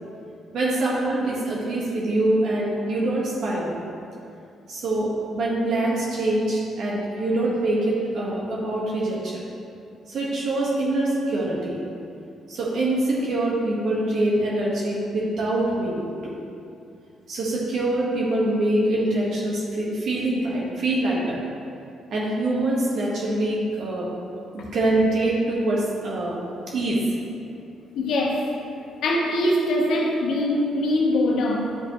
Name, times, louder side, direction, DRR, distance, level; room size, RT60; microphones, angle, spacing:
voice 1, 0.5-3.8 4.7-9.4 10.1-11.8 12.5-16.4 17.3-21.4 22.1-24.1 24.5-26.4 26.7-27.0, right 1 dB, 65° right, -5 dB, 1.4 m, -24 dB
voice 2, 27.9-28.5 29.0-31.8, left 1 dB, 75° left, -1 dB, 1.2 m, -23 dB
10.5 x 5.4 x 3.1 m, 2.6 s
cardioid pair, 90°, 0 cm